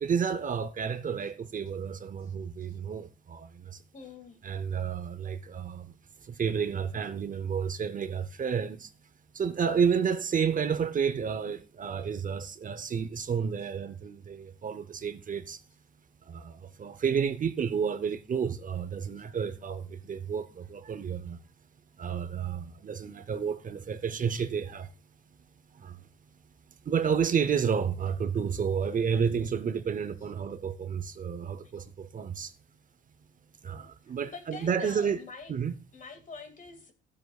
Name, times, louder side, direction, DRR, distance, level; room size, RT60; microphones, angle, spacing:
voice 1, 0.0-3.8 4.4-5.9 6.2-8.9 9.3-15.6 16.2-21.4 22.0-24.9 25.7-26.0 26.8-32.5 33.6-35.2 35.5-35.7, right 7 dB, 45° right, 0.7 m, -31 dB
voice 2, 3.9-4.4 19.2-19.3 31.7-31.8 34.3-35.5 35.9-36.9, left 4 dB, 40° left, 2.2 m, -45 dB
15.0 x 8.1 x 2.4 m
cardioid pair, 90°, 20 cm